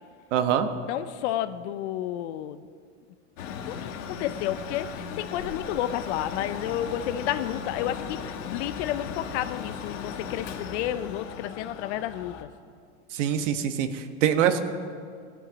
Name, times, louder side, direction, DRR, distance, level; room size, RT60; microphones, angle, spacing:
voice 1, 0.3-0.7 13.1-14.6, right 9 dB, 75° right, 8 dB, 1.3 m, -24 dB
voice 2, 0.9-2.6 3.7-12.3, left 12 dB, 65° left, 12 dB, 0.7 m, -31 dB
Mechanical fan, 3.4-12.4, left 6 dB, 80° left, 1.5 m, -37 dB
16.5 x 11.5 x 5.1 m, 2.2 s
supercardioid pair, 120°, 37 cm